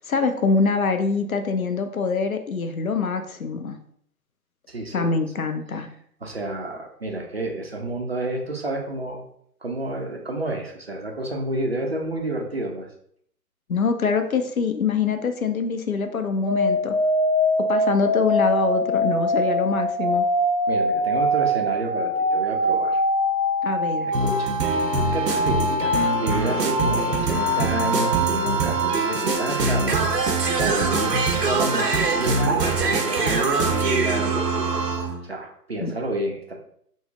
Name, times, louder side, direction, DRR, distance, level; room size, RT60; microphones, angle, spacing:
voice 1, 0.1-3.8 4.9-5.9 13.7-16.9 17.7-20.3 23.6-24.1 35.8-35.9, left 4 dB, 60° left, 7 dB, 0.5 m, -24 dB
voice 2, 4.7-5.1 6.2-9.2 9.6-12.9 20.7-23.0 24.2-24.5 25.0-36.5, right 2 dB, 40° right, 1 dB, 0.5 m, -30 dB
sound 1, 16.5-29.4, equal, 30° left, 1.1 m, -23 dB
sound 2, 24.1-35.2, right 3 dB, 80° right, 0.8 m, -23 dB
3.8 x 2.0 x 3.5 m, 0.66 s
figure-of-eight pair, 140°, 48 cm